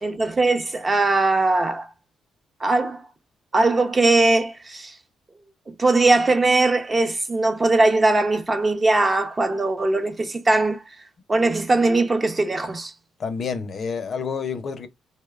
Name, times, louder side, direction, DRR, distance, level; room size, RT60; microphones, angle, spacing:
voice 1, 0.0-1.9 2.6-3.0 3.5-5.0 5.7-10.8 11.3-12.9, right 2 dB, 25° right, 0.5 m, -20 dB
voice 2, 13.2-14.9, left 5 dB, 50° left, 0.5 m, -28 dB
2.7 x 2.1 x 2.3 m
cardioid pair, 90°, 0 cm